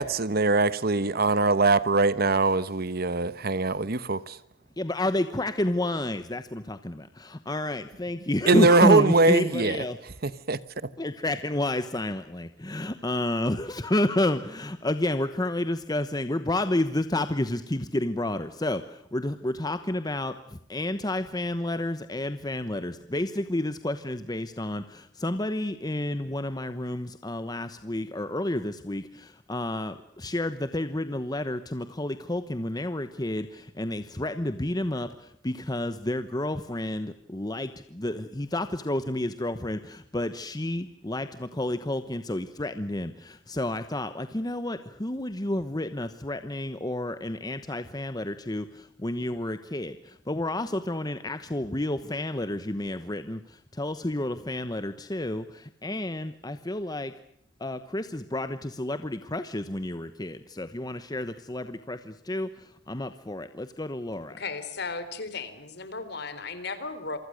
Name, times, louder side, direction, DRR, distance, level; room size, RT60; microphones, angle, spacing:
voice 1, 0.0-4.4 8.5-9.8 10.2-10.6, right 3 dB, 55° right, 1.1 m, -22 dB
voice 2, 4.8-10.0 11.0-57.1 57.6-64.4, left 1 dB, 20° left, 1.0 m, -30 dB
voice 3, 64.4-67.2, left 4 dB, 60° left, 3.7 m, -35 dB
27.5 x 24.0 x 6.5 m
head